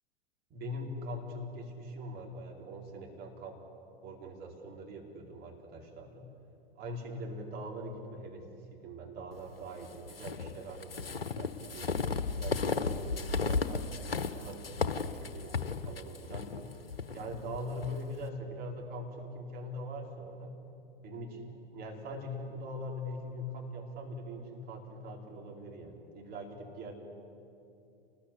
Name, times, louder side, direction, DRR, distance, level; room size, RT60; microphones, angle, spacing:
voice 1, 0.5-3.6 4.0-6.3 6.8-11.9 12.3-16.7 17.1-20.6 21.0-26.9, equal, 30° right, 0 dB, 4.8 m, -42 dB
sound 1, 10.1-18.0, left 4 dB, 75° left, 1.2 m, -34 dB
28.5 x 20.0 x 8.4 m, 2.7 s
figure-of-eight pair, 95°, 30 cm